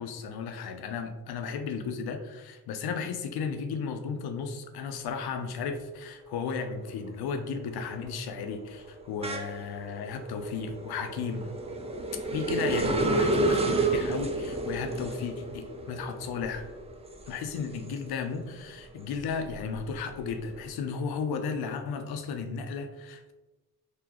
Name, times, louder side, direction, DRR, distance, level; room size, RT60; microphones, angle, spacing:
voice 1, 0.0-11.5 12.3-16.7 17.3-23.3, left 5 dB, 85° left, 6 dB, 0.6 m, -34 dB
sound 1, 6.3-6.7 7.1-18.4 18.8-20.5, right 2 dB, 15° right, 0.5 m, -31 dB
3.7 x 2.9 x 3.0 m, 1.1 s
cardioid pair, 90°, 37 cm